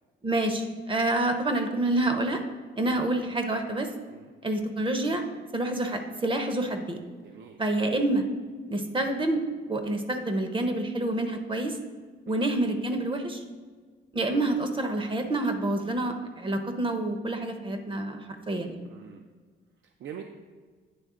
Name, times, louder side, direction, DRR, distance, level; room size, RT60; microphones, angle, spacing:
voice 1, 0.2-2.4 2.8-3.9 4.4-5.2 5.5-7.0 7.6-8.2 8.7-9.4 9.7-11.8 12.3-13.4 14.1-18.8, right 2 dB, 25° right, 6 dB, 0.7 m, -28 dB
voice 2, 7.2-7.6 12.3-12.5 14.3-14.5 18.8-19.2 20.0-20.2, right 8 dB, 65° right, 4 dB, 0.5 m, -43 dB
9.3 x 3.2 x 3.7 m, 1.5 s
cardioid pair, 90°, 20 cm